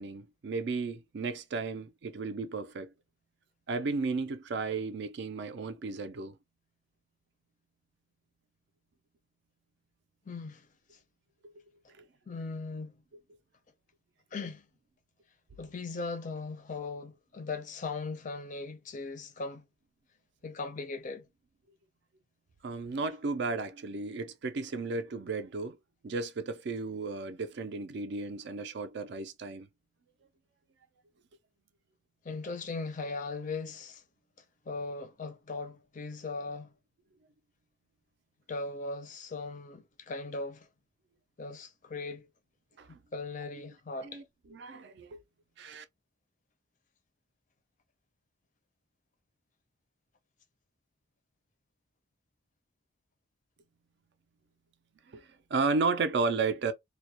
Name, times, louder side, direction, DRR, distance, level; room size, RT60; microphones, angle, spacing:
voice 1, 0.0-2.9 3.7-6.4 11.4-11.5 12.0-12.1 22.6-25.8 26.0-29.7 42.8-43.0 44.0-44.2 44.5-45.2 45.6-45.8 55.1-56.7, right 4 dB, 55° right, 0.4 m, -34 dB
voice 2, 10.3-10.7 12.3-13.0 14.3-14.7 15.6-19.7 20.4-21.3 32.2-34.0 34.7-36.7 38.5-40.7 41.4-42.3 43.1-44.2, left 3 dB, 40° left, 0.4 m, -38 dB
2.2 x 2.1 x 2.8 m
head